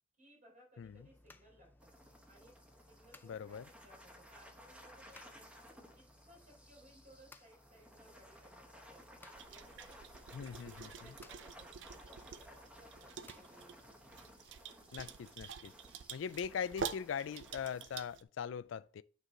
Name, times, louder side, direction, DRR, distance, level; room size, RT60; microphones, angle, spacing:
voice 1, 0.2-1.9 2.3-5.5 5.8-10.2 10.5-13.8, equal, 45° right, 4.1 m, -63 dB
voice 2, 0.8-1.1 3.2-3.6 10.3-11.1 14.9-15.7 16.1-19.0, left 7 dB, 80° left, 0.3 m, -41 dB
sound 1, 0.8-14.3, left 2 dB, 10° left, 0.4 m, -64 dB
sound 2, 1.8-17.8, equal, 5° right, 1.0 m, -58 dB
sound 3, 9.4-18.2, right 6 dB, 65° right, 0.5 m, -48 dB
8.9 x 4.7 x 3.8 m
head